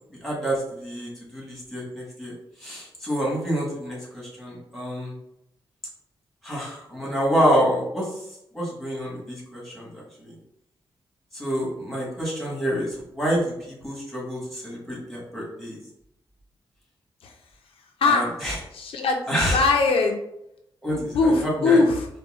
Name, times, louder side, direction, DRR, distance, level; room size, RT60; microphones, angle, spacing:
voice 1, 0.2-2.3 2.6-5.1 6.4-8.2 8.5-10.3 11.3-15.8 18.0-18.6 19.3-19.6 20.8-21.8, equal, ahead, -5 dB, 1.3 m, -27 dB
voice 2, 18.7-19.2 19.5-20.2 20.9-22.1, left 3 dB, 85° left, 2 dB, 0.4 m, -20 dB
3.9 x 2.1 x 2.4 m, 0.79 s
wide cardioid pair, 110°, 9 cm